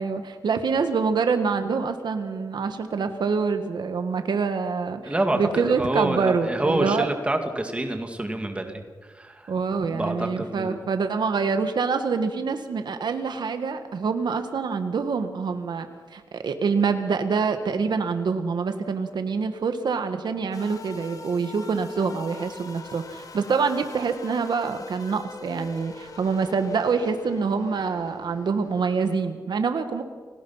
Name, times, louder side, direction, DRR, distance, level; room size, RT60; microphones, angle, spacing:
voice 1, 0.0-7.1 9.5-30.0, right 5 dB, 90° right, 8 dB, 1.7 m, -26 dB
voice 2, 5.0-8.8 9.1-9.5 9.9-10.8, right 1 dB, 15° right, 5 dB, 2.0 m, -27 dB
sound 1, 20.5-29.3, left 4 dB, 55° left, 1.8 m, -43 dB
29.5 x 18.0 x 5.7 m, 1.5 s
wide cardioid pair, 165°, 7 cm